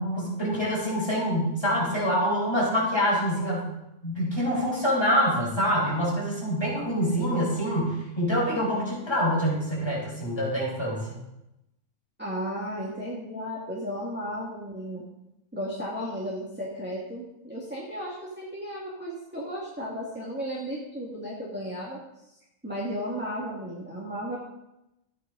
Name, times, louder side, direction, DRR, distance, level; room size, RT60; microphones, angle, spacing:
voice 1, 0.0-3.7 4.0-11.2, equal, 20° left, -5 dB, 4.9 m, -26 dB
voice 2, 12.2-15.0 15.5-22.0 22.6-24.4, equal, 10° right, -5 dB, 1.9 m, -34 dB
13.5 x 9.3 x 3.9 m, 0.89 s
omnidirectional pair, 1.4 m